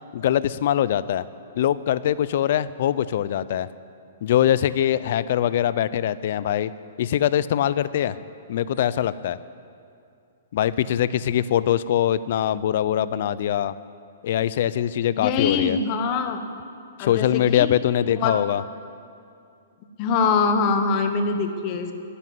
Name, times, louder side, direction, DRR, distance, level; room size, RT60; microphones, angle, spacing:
voice 1, 0.1-1.2 1.6-3.7 4.2-6.7 7.0-8.2 8.5-9.4 10.5-13.7 14.2-15.8 17.0-18.6, left 11 dB, 50° left, 16 dB, 0.4 m, -22 dB
voice 2, 15.1-16.4 17.0-17.7 18.2-18.3 20.0-21.9, left 5 dB, 30° left, 7 dB, 1.1 m, -23 dB
11.5 x 10.0 x 9.4 m, 2.5 s
hypercardioid pair, 165°, 0 cm